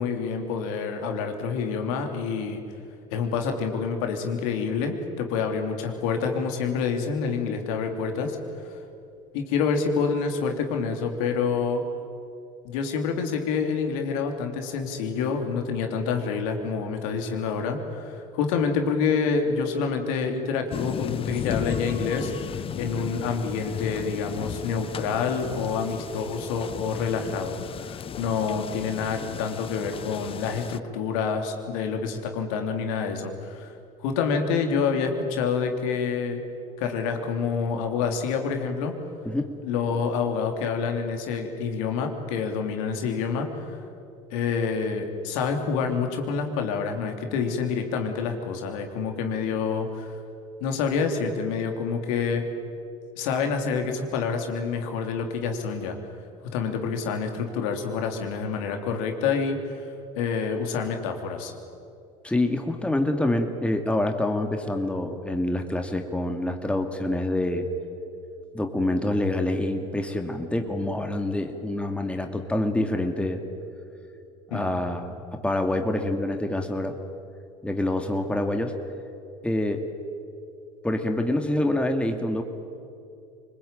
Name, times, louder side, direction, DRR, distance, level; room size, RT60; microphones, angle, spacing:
voice 1, 0.0-2.6 3.1-8.4 8.7-8.8 9.3-11.8 12.6-33.7 34.0-36.4 36.8-38.9 39.6-43.8 44.3-50.1 50.6-52.4 53.2-56.0 56.5-59.9 60.2-61.5 74.5-74.7, left 5 dB, 75° left, 4 dB, 3.3 m, -27 dB
sound 1, 20.7-30.8, left 8 dB, 35° left, 0.6 m, -35 dB
voice 2, 39.3-39.6 62.2-67.7 68.5-73.4 74.5-77.0 77.6-78.7 79.4-79.8 80.8-82.4, left 1 dB, 5° left, 5 dB, 2.3 m, -26 dB
25.0 x 21.0 x 9.1 m, 2.6 s
supercardioid pair, 85°, 17 cm